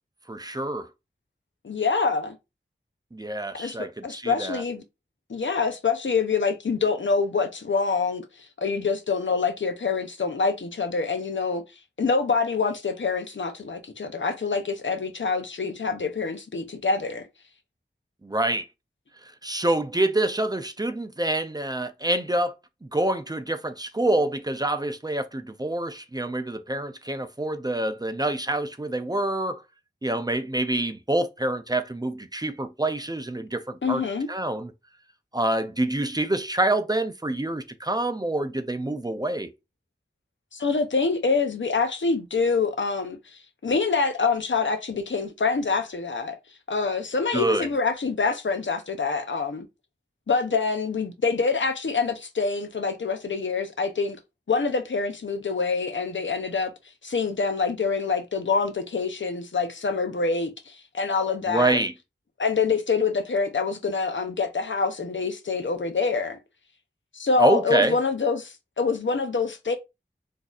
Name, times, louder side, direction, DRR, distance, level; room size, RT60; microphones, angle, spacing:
voice 1, 0.3-0.9 3.1-4.6 18.2-18.7 19.4-22.5 22.8-29.6 30.0-34.7 35.3-39.5 47.3-47.7 61.5-61.9 67.4-68.0, right 1 dB, 20° right, 0.4 m, -26 dB
voice 2, 1.6-2.3 3.5-4.8 5.3-8.3 8.6-11.6 12.0-17.3 33.8-34.3 40.5-46.4 46.7-49.6 50.3-54.2 54.5-56.7 57.0-61.8 62.4-66.4 67.1-69.8, left 4 dB, 75° left, 0.6 m, -26 dB
3.9 x 2.6 x 2.4 m
wide cardioid pair, 45°, 20 cm